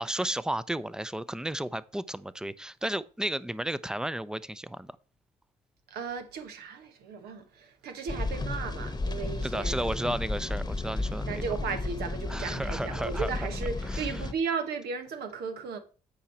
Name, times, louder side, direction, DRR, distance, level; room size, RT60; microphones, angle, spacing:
voice 1, 0.0-5.0 9.4-11.4 12.3-13.3 13.9-14.2, right 1 dB, 5° right, 0.6 m, -33 dB
voice 2, 5.9-10.0 11.3-15.8, right 5 dB, 75° right, 1.2 m, -35 dB
sound 1, 8.1-14.3, left 2 dB, 25° left, 1.1 m, -33 dB
8.5 x 4.9 x 4.3 m
hypercardioid pair, 50°, 16 cm